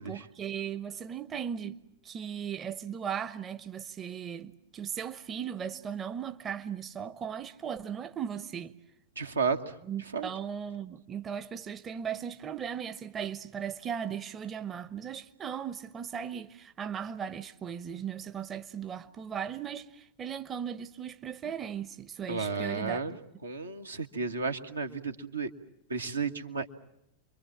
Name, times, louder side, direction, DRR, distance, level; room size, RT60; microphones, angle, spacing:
voice 1, 0.0-1.8 2.0-8.7 9.8-23.0, right 8 dB, 25° right, 0.9 m, -37 dB
voice 2, 9.2-9.6 10.1-10.3 22.3-23.1 23.4-25.5 25.9-26.7, right 4 dB, 80° right, 1.6 m, -32 dB
28.5 x 23.5 x 7.5 m
figure-of-eight pair, 90°, 0 cm